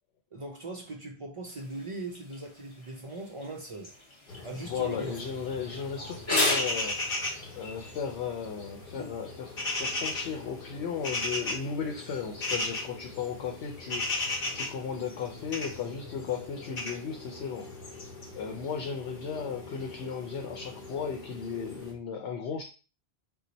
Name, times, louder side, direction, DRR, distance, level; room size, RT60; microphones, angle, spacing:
voice 1, 0.3-3.9 4.4-5.2, right 2 dB, 55° right, 0.3 m, -40 dB
sound 1, 1.4-15.8, left 2 dB, 30° left, 0.8 m, -39 dB
sound 2, 4.3-21.9, left 2 dB, 55° left, 1.1 m, -37 dB
voice 2, 4.6-7.2 7.6-17.7 18.3-22.6, left 6 dB, 85° left, 0.9 m, -35 dB
2.8 x 2.1 x 3.9 m
omnidirectional pair, 1.1 m